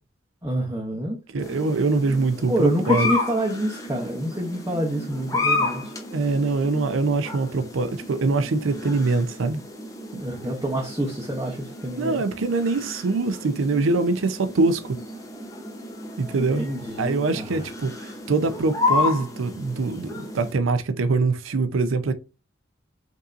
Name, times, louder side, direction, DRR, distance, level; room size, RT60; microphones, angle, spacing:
voice 1, 0.4-1.2 2.5-5.9 10.2-11.6 11.8-12.2 16.3-17.6, right 1 dB, 15° right, 0.7 m, -27 dB
voice 2, 1.3-3.1 6.1-9.6 12.0-15.0 16.2-16.7 17.0-22.1, right 3 dB, 80° right, 0.5 m, -23 dB
sound 1, 1.4-20.5, left 3 dB, 15° left, 0.7 m, -32 dB
5.3 x 2.7 x 2.5 m
head